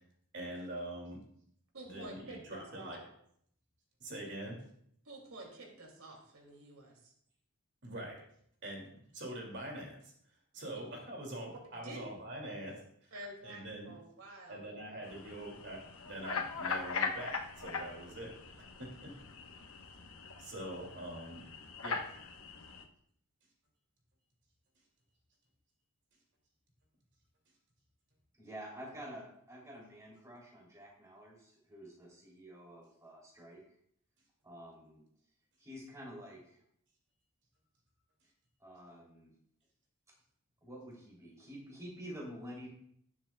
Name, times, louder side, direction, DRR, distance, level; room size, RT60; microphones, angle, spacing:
voice 1, 0.3-1.2 1.8-3.0 4.0-4.6 7.8-8.2 8.6-10.1 10.5-13.1 13.4-13.9 14.5-18.3 18.8-19.1 20.4-21.4 21.8-22.1, right 1 dB, 55° right, 0 dB, 2.4 m, -44 dB
voice 2, 1.7-3.0 5.0-7.1 11.8-12.0 13.1-15.1, right 2 dB, 80° right, 0 dB, 2.4 m, -49 dB
sound 1, 15.0-22.8, left 5 dB, 80° left, 1.0 m, -41 dB
voice 3, 28.4-33.7 34.4-35.0 35.6-36.6 38.6-39.3 40.6-42.7, equal, 15° right, -3 dB, 3.0 m, -49 dB
17.5 x 7.4 x 2.3 m, 0.68 s
head